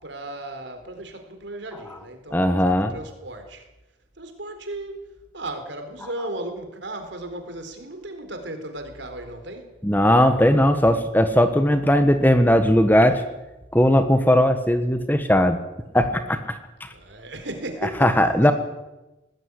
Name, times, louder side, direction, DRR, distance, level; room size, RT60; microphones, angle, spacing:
voice 1, 0.0-3.6 4.2-5.0 5.3-9.7 16.9-18.1, right 1 dB, 70° right, 7 dB, 4.0 m, -35 dB
voice 2, 2.3-2.9 9.8-13.2 13.7-15.6 15.9-16.9 18.0-18.5, equal, 10° left, 9 dB, 1.3 m, -18 dB
19.5 x 15.0 x 9.7 m, 1.0 s
head